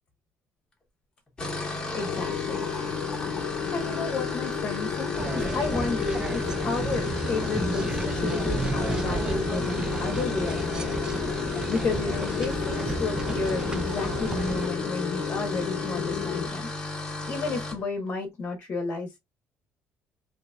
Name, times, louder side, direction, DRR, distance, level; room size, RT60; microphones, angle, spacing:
sound 1, 1.3-17.8, left 2 dB, 15° left, 1.3 m, -35 dB
voice 1, 1.9-3.0 3.7-11.1 11.3-16.7 17.3-19.1, left 3 dB, 35° left, 1.1 m, -32 dB
sound 2, 2.1-16.5, left 9 dB, 80° left, 0.6 m, -32 dB
sound 3, 5.1-14.7, right 3 dB, 15° right, 0.3 m, -32 dB
4.0 x 3.0 x 2.3 m
cardioid pair, 155°, 5 cm